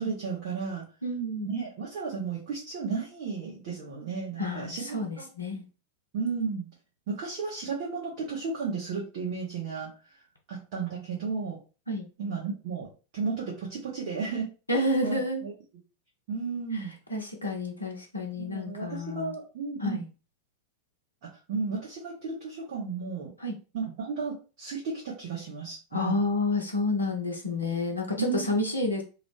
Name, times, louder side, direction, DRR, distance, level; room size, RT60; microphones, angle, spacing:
voice 1, 0.0-0.8 1.4-4.9 5.2-5.3 6.1-6.7 7.1-9.9 10.5-11.6 12.2-12.9 13.1-15.5 16.3-16.9 18.3-20.0 21.2-23.3 23.7-26.2 28.2-28.4, right 5 dB, 50° right, -5 dB, 1.0 m, -33 dB
voice 2, 1.0-1.5 4.4-5.6 11.9-12.1 14.7-15.4 16.7-16.8 17.1-19.3 19.8-20.0 23.4-23.5 25.9-29.0, left 2 dB, 80° left, 2 dB, 0.7 m, -29 dB
2.9 x 2.0 x 3.2 m, 0.34 s
figure-of-eight pair, 90°, 0 cm